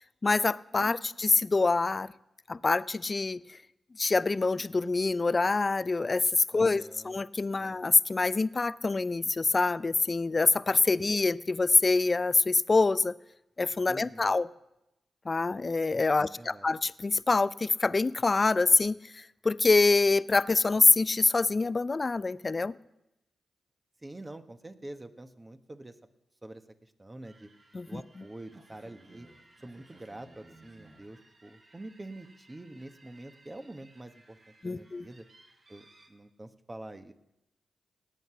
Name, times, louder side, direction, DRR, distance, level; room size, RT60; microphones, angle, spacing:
voice 1, 0.2-2.1 2.5-3.6 4.0-13.2 13.6-14.5 15.3-22.7 27.7-28.0 34.6-35.1, left 3 dB, 40° left, 18 dB, 0.5 m, -25 dB
voice 2, 0.7-1.2 6.5-7.2 7.6-7.8 10.9-11.0 13.9-14.4 16.2-16.7 24.0-26.0 26.4-27.5 27.8-29.3 29.6-34.4 34.6-35.2 35.7-37.1, right 1 dB, 25° right, 8 dB, 1.3 m, -46 dB
sound 1, 27.2-36.1, right 2 dB, 55° right, 5.5 m, -59 dB
18.5 x 8.2 x 5.9 m, 0.89 s
supercardioid pair, 40°, 0 cm